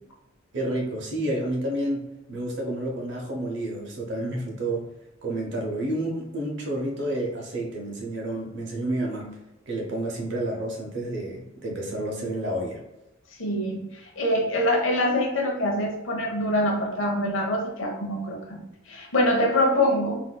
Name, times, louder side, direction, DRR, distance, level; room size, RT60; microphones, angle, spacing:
voice 1, 0.5-4.9 5.2-9.3 9.7-12.8, right 1 dB, 60° right, -1 dB, 0.6 m, -30 dB
voice 2, 13.4-20.2, left 1 dB, 70° left, 0 dB, 0.8 m, -25 dB
3.7 x 2.5 x 2.2 m, 0.90 s
head